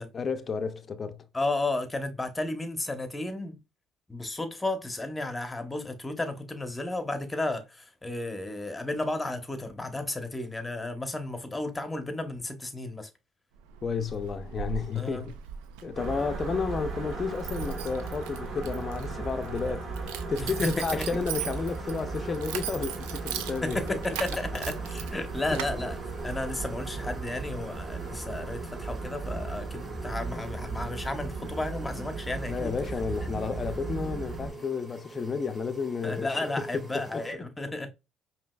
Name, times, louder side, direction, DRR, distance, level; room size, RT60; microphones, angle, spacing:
voice 1, 0.1-1.2 13.8-15.3 15.8-19.9 20.3-24.0 25.5-25.6 32.5-36.3 36.6-37.2, left 5 dB, 35° left, 0.5 m, -32 dB
voice 2, 1.3-3.6 4.1-13.1 14.9-15.3 20.4-21.2 23.6-26.0 26.2-32.7 36.0-37.9, left 2 dB, 15° left, 0.9 m, -33 dB
Keys jangling, 13.5-26.6, right 8 dB, 80° right, 0.5 m, -39 dB
sound 1, 16.0-34.5, right 3 dB, 45° right, 1.3 m, -36 dB
sound 2, 21.2-37.3, right 4 dB, 5° right, 2.2 m, -48 dB
5.0 x 2.9 x 2.3 m
supercardioid pair, 70°, 0 cm